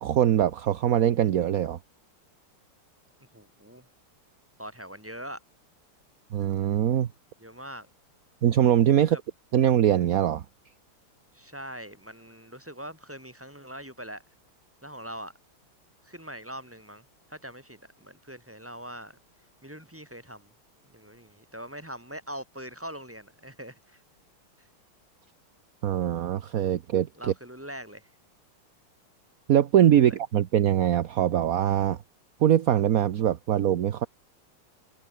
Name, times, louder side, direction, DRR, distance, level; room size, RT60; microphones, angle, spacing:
voice 1, 0.0-1.8 6.3-7.1 8.4-9.2 9.5-10.4 25.8-27.3 29.5-32.0 32.4-34.1, right 10 dB, 55° right, 1.0 m, -22 dB
voice 2, 3.3-3.9 4.6-5.4 7.4-7.9 9.1-9.2 11.3-14.2 14.8-15.3 16.0-19.2 19.6-20.5 20.9-24.0 24.6-24.7 27.2-28.1 30.0-30.2, equal, 5° right, 6.3 m, -42 dB
omnidirectional pair, 2.4 m